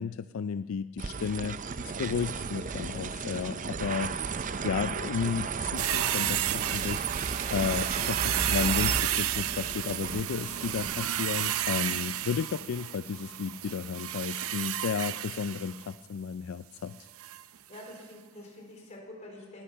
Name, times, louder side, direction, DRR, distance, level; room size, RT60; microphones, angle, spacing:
voice 1, 0.0-7.2 7.5-17.0, left 6 dB, 75° left, 12 dB, 0.4 m, -33 dB
sound 1, 1.0-10.9, right 5 dB, 40° right, 0.5 m, -34 dB
sound 2, 5.8-15.9 17.2-17.4 17.7-17.8, right 12 dB, 90° right, 0.6 m, -32 dB
voice 2, 17.7-19.6, left 1 dB, 35° left, 0 dB, 4.1 m, -46 dB
19.0 x 13.5 x 5.7 m, 1.4 s
head